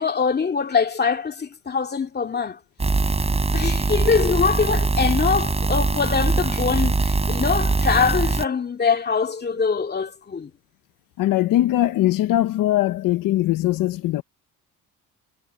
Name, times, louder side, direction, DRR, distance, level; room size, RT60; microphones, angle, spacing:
voice 1, 0.0-2.6 3.5-10.5, left 5 dB, 30° left, 2.4 m, -23 dB
sound 1, 2.8-8.5, right 3 dB, 20° right, 4.9 m, -22 dB
voice 2, 11.2-14.2, left 14 dB, 75° left, 1.0 m, -21 dB
cardioid pair, 100°, 33 cm